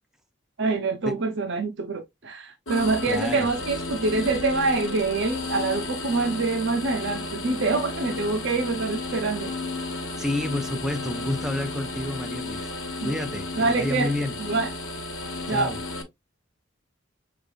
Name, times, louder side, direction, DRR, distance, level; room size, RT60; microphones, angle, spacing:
voice 1, 0.6-9.5 13.0-13.1 13.6-14.1 14.4-14.7 15.5-15.7, right 3 dB, 65° right, 0.7 m, -25 dB
sound 1, 2.7-16.0, left 3 dB, 90° left, 1.4 m, -33 dB
voice 2, 3.1-3.5 10.2-12.7 13.0-14.4 15.5-15.8, left 1 dB, 5° right, 0.5 m, -29 dB
6.5 x 2.5 x 2.3 m
head